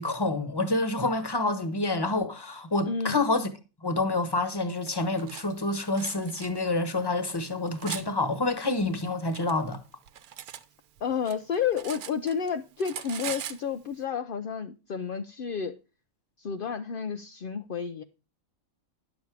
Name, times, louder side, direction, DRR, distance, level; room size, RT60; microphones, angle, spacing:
voice 1, 0.0-3.5 3.8-9.8, left 2 dB, 20° left, 1.1 m, -28 dB
voice 2, 2.9-3.2 11.0-15.8 16.4-18.0, left 6 dB, 55° left, 0.6 m, -31 dB
Cutlery silverware, 4.9-5.4 6.0-6.5 7.2-8.1 8.9-10.6 11.0-12.5 12.8-13.6, right 10 dB, 90° right, 1.3 m, -40 dB
10.5 x 7.3 x 4.7 m
omnidirectional pair, 1.5 m